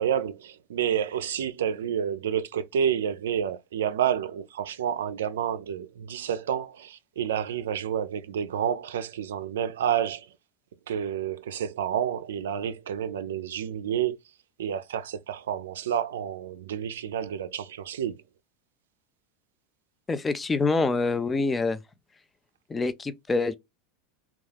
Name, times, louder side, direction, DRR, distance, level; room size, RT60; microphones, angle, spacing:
voice 1, 0.0-10.3 10.9-14.2 14.6-18.2, right 9 dB, 80° right, 0.4 m, -29 dB
voice 2, 20.1-21.8 22.7-23.5, left 3 dB, 20° left, 0.4 m, -26 dB
2.3 x 2.3 x 3.3 m
hypercardioid pair, 95°, 0 cm